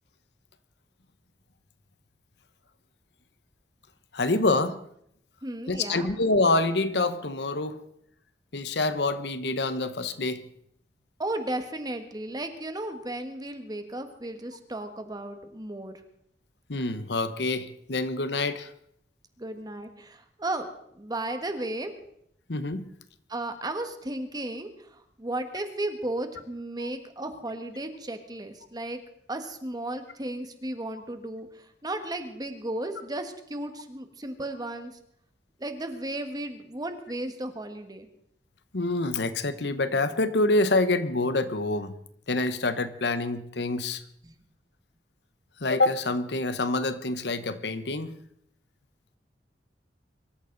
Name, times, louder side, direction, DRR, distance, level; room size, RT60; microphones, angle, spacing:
voice 1, 4.1-4.8 5.7-7.8 8.5-10.4 16.7-18.7 22.5-22.9 26.8-26.9 38.7-41.9 42.3-44.0 45.6-48.2, left 2 dB, 70° left, 12 dB, 1.0 m, -26 dB
voice 2, 5.4-6.1 11.2-16.0 19.4-20.7 20.9-21.9 23.3-29.0 29.3-34.9 35.6-38.1 44.2-44.3, right 1 dB, 25° right, 7 dB, 1.6 m, -34 dB
24.0 x 14.0 x 4.0 m, 0.71 s
head